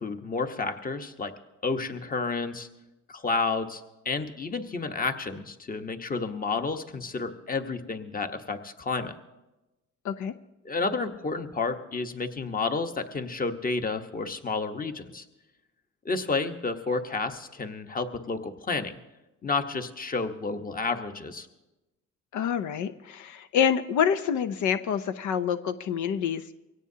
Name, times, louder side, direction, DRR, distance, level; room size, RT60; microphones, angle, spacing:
voice 1, 0.0-1.3 1.6-2.7 3.1-9.1 10.6-15.2 16.0-18.9 19.4-21.5, left 4 dB, 30° left, 7 dB, 1.2 m, -31 dB
voice 2, 22.3-26.5, left 8 dB, 75° left, 10 dB, 0.7 m, -27 dB
23.5 x 17.5 x 2.8 m, 1.0 s
cardioid pair, 90°, 30 cm